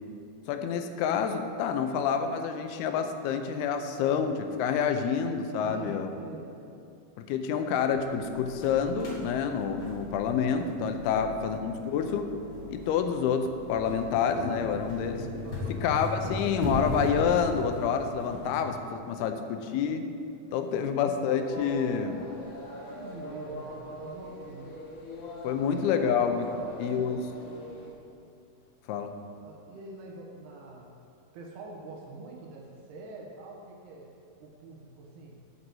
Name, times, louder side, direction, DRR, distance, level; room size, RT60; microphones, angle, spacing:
voice 1, 0.5-6.1 7.2-12.3 12.7-15.3 15.7-20.0 20.5-22.2 25.4-26.5 26.8-27.3 28.9-29.1, left 7 dB, 85° left, 7 dB, 2.6 m, -28 dB
voice 2, 5.6-6.5 11.1-11.6 15.4-16.0 18.8-19.6 20.8-21.0 22.0-22.2 22.9-24.7 25.6-26.0 26.5-27.1 29.4-30.9 31.3-34.1 34.4-35.4, right 3 dB, 90° right, -2 dB, 3.3 m, -45 dB
sound 1, 8.1-18.8, left 1 dB, 70° right, 1.3 m, -47 dB
sound 2, 8.3-18.6, left 1 dB, 50° left, 1.2 m, -37 dB
sound 3, 21.4-27.9, left 1 dB, 65° left, 2.6 m, -42 dB
8.8 x 5.4 x 7.8 m, 2.6 s
omnidirectional pair, 4.5 m